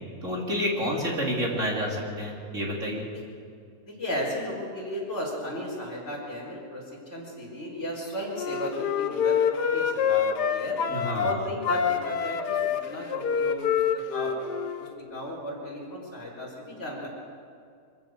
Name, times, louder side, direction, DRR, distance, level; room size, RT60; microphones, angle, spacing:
voice 1, 0.2-3.1 10.9-11.4, equal, 45° right, -2 dB, 3.6 m, -29 dB
voice 2, 3.8-6.8 7.1-10.8 11.2-13.8 14.1-17.1, equal, 40° left, -5 dB, 5.1 m, -34 dB
Wind instrument woodwind instrument, 8.3-11.4 11.6-14.9, left 8 dB, 75° left, 1.5 m, -27 dB
24.0 x 15.5 x 7.0 m, 2.4 s
omnidirectional pair, 1.8 m